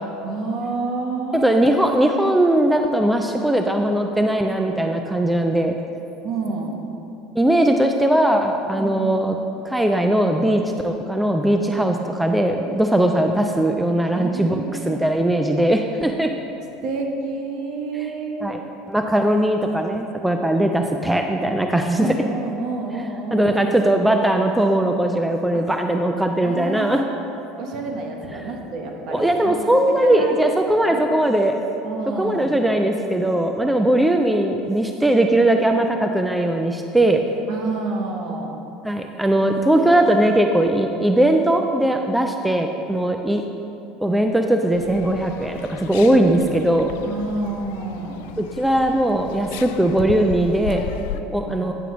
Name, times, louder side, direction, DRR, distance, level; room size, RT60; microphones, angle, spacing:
voice 1, 0.2-1.5 6.2-6.8 8.7-9.2 11.8-11.9 14.1-15.0 16.8-18.6 22.0-23.7 25.5-25.6 26.4-27.1 27.6-30.4 30.9-31.1 31.8-32.6 37.5-38.5 39.3-39.5 39.8-39.9 46.2-46.3 47.0-48.2 51.4-51.7, right 3 dB, 55° right, 2 dB, 1.1 m, -29 dB
voice 2, 1.3-5.8 7.4-9.4 9.6-16.3 17.9-18.1 18.4-18.6 18.9-22.1 23.3-27.0 29.1-31.5 32.2-37.2 38.8-43.4 44.0-46.9 48.4-50.8 51.1-51.7, right 1 dB, 5° right, 4 dB, 0.3 m, -19 dB
sound 1, 44.7-51.2, left 10 dB, 80° left, 0.3 m, -35 dB
9.2 x 6.9 x 3.1 m, 2.9 s
supercardioid pair, 125°, 0 cm